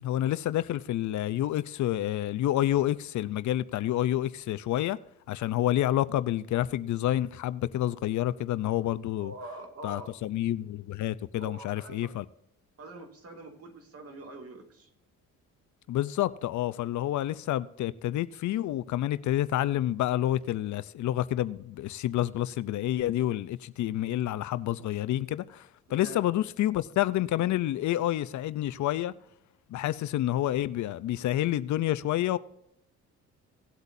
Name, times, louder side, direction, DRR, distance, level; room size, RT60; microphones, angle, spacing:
voice 1, 0.0-5.0 5.3-9.3 9.8-12.2 15.9-25.6 25.9-29.1 29.7-32.4, left 13 dB, 70° left, 0.6 m, -28 dB
voice 2, 9.2-10.1 11.4-12.1 12.8-14.9 25.9-26.2, right 2 dB, 50° right, 2.5 m, -44 dB
18.0 x 8.1 x 2.7 m
cardioid pair, 90°, 30 cm